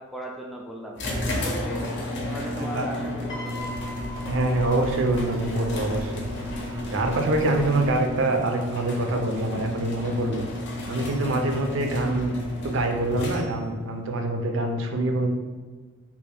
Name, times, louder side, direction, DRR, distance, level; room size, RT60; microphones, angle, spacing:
voice 1, 0.0-2.0 2.3-3.9, right 1 dB, ahead, -2 dB, 0.3 m, -37 dB
sound 1, 1.0-13.8, left 1 dB, 55° left, 0.6 m, -32 dB
Piano, 3.3-5.7 6.7-7.0, left 1 dB, 20° left, 0.8 m, -41 dB
sound 2, 3.6-8.0, equal, 90° right, 0.8 m, -38 dB
voice 2, 4.3-6.3 6.9-10.4 10.9-12.3 12.6-15.3, right 2 dB, 60° right, 3 dB, 0.5 m, -25 dB
3.4 x 2.4 x 3.4 m, 1.4 s
head